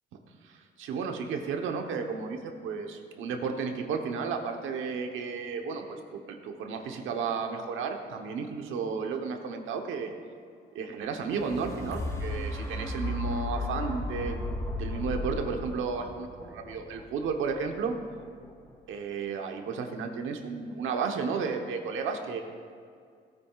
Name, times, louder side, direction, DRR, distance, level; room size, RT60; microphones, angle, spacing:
voice 1, 0.4-5.9 6.1-10.1 10.7-14.4 14.8-17.9 18.9-22.4, right 5 dB, 85° right, 4 dB, 1.1 m, -33 dB
sound 1, 11.1-19.2 19.7-19.8, left 2 dB, 15° left, 1.5 m, -36 dB
16.5 x 9.4 x 2.4 m, 2.2 s
cardioid pair, 90°, 20 cm